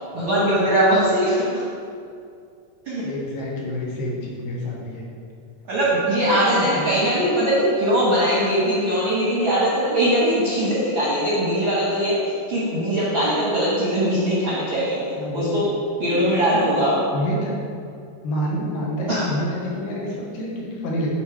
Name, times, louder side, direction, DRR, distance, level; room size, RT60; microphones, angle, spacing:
voice 1, 0.1-1.6 2.8-3.0 5.7-12.2 12.5-15.0 15.3-15.6 16.0-17.0 19.1-19.2, right 1 dB, 60° right, -7 dB, 1.3 m, -21 dB
voice 2, 3.0-5.1 5.9-7.2 15.1-15.6 16.0-16.8 17.1-17.6 18.2-21.1, equal, 85° left, -3 dB, 2.9 m, -28 dB
9.8 x 4.2 x 4.6 m, 2.3 s
omnidirectional pair, 3.9 m